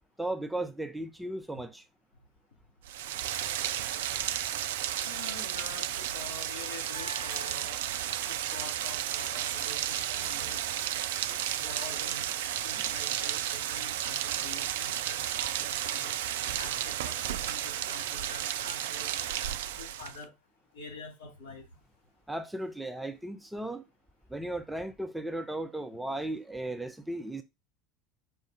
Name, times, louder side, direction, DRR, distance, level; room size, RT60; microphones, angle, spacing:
voice 1, 0.2-1.8 22.3-23.8 24.3-27.4, right 1 dB, 5° right, 0.6 m, -36 dB
Rain, 2.8-20.2, right 11 dB, 65° right, 0.3 m, -33 dB
voice 2, 5.1-7.8 8.3-10.6 11.5-12.3 12.6-16.1 16.6-19.1 19.8-20.3 20.7-21.7, left 4 dB, 75° left, 2.6 m, -46 dB
sound 1, 6.9-8.4 8.8-14.2 14.9-15.0 15.3-23.3, left 1 dB, 50° left, 2.3 m, -56 dB
5.2 x 2.4 x 4.0 m
figure-of-eight pair, 70°, 0 cm